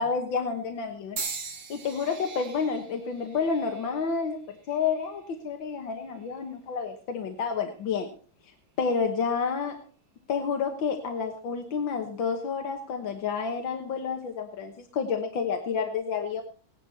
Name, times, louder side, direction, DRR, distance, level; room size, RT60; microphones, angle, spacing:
voice 1, 0.0-1.4 1.7-8.1 8.8-9.8 10.3-16.4, left 5 dB, 70° left, 4 dB, 2.0 m, -30 dB
sound 1, 1.2-5.3 6.0-6.4 7.4-7.6, right 5 dB, 40° right, 1.9 m, -41 dB
16.5 x 11.5 x 4.1 m, 0.41 s
omnidirectional pair, 2.2 m